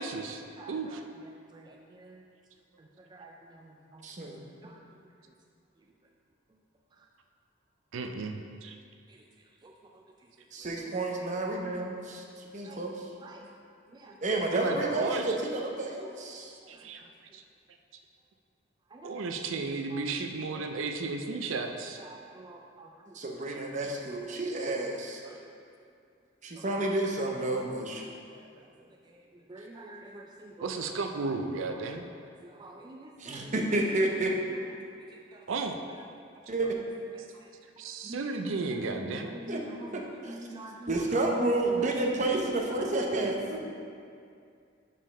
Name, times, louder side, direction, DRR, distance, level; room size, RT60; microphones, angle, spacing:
voice 1, 0.0-0.4 0.7-1.0 7.9-8.7 14.5-15.4 16.7-17.0 17.3-17.4 19.0-22.0 30.6-32.1 35.5-35.8 37.3-37.4 37.8-39.4, right 3 dB, 85° right, 5 dB, 0.5 m, -34 dB
voice 2, 0.6-2.2 2.8-4.8 5.3-5.4 5.8-5.9 6.5-6.6 6.9-7.1 9.1-10.3 10.6-10.7 11.1-11.3 12.6-12.8 13.2-13.5 13.9-14.4 15.5-15.6 16.0-16.1 16.6-17.4 18.9-19.3 19.9-20.0 20.5-20.6 21.3-23.2 25.2-25.5 26.6-26.7 27.6-31.0 31.5-31.9 32.2-33.5 34.3-34.7 35.1-35.5 35.9-36.0 36.6-36.7 37.1-37.5 38.0-42.5 42.9-43.6, right 1 dB, 20° right, 0 dB, 0.4 m, -48 dB
voice 3, 4.0-4.4 10.5-12.2 12.5-12.9 14.2-16.5 23.1-25.2 26.4-28.1 33.2-34.3 36.5-36.7 39.5-39.6 40.2-40.3 40.9-43.6, right 2 dB, 40° right, 0 dB, 0.8 m, -30 dB
5.5 x 5.1 x 5.4 m, 2.4 s
head